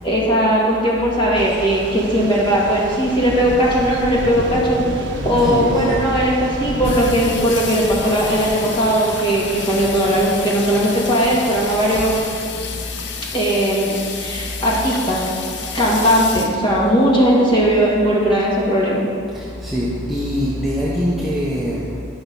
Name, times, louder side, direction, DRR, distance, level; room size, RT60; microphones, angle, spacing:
voice 1, 0.0-4.9 5.2-12.2 13.3-15.2 15.7-19.1, equal, 25° left, -5 dB, 1.9 m, -18 dB
Thunder / Rain, 1.3-12.4, right 1 dB, 65° right, 0.9 m, -30 dB
voice 2, 5.4-6.2 12.5-13.4 14.2-14.5 15.6-15.9 19.3-22.0, equal, ahead, -7 dB, 0.8 m, -25 dB
Water tap faucet / Sink (filling or washing), 6.8-17.7, left 6 dB, 60° left, 0.7 m, -31 dB
11.0 x 5.8 x 5.4 m, 2.4 s
head